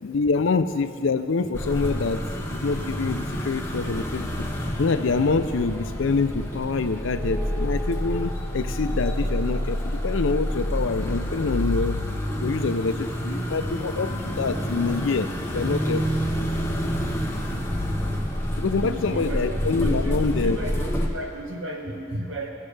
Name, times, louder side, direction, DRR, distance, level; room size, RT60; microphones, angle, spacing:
voice 1, 0.0-4.3 4.8-12.0 12.4-16.1 18.6-20.6, left 4 dB, 80° left, 10 dB, 0.5 m, -26 dB
sound 1, 1.5-21.1, equal, 10° left, 0.8 m, -28 dB
voice 2, 18.8-22.5, right 1 dB, 75° right, 1 dB, 1.3 m, -34 dB
18.0 x 7.3 x 3.3 m, 2.8 s
head